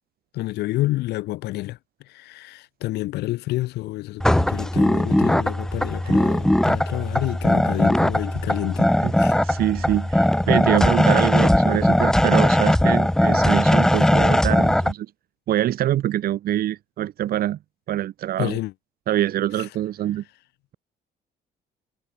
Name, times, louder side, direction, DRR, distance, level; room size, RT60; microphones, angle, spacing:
voice 1, 0.3-1.8 2.0-9.4 18.4-18.7, left 17 dB, 80° left, 2.4 m, -29 dB
sound 1, 4.2-14.9, left 1 dB, 5° left, 0.7 m, -19 dB
voice 2, 9.0-15.1 15.5-17.6 17.9-18.6 19.1-20.2, right 12 dB, 60° right, 2.1 m, -25 dB
cardioid pair, 110°, 17 cm